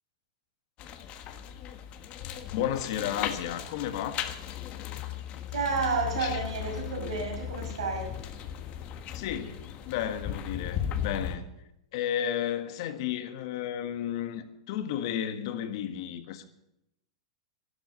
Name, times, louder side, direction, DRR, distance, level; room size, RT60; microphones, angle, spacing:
sound 1, 0.8-11.4, left 10 dB, 40° left, 1.4 m, -37 dB
voice 1, 2.5-4.2 6.2-6.4 9.1-9.6 9.9-11.5 11.9-16.5, left 10 dB, 60° left, 1.6 m, -32 dB
voice 2, 5.5-8.2, right 4 dB, 80° right, 6.0 m, -31 dB
12.5 x 12.5 x 6.8 m
hypercardioid pair, 110°, 3 cm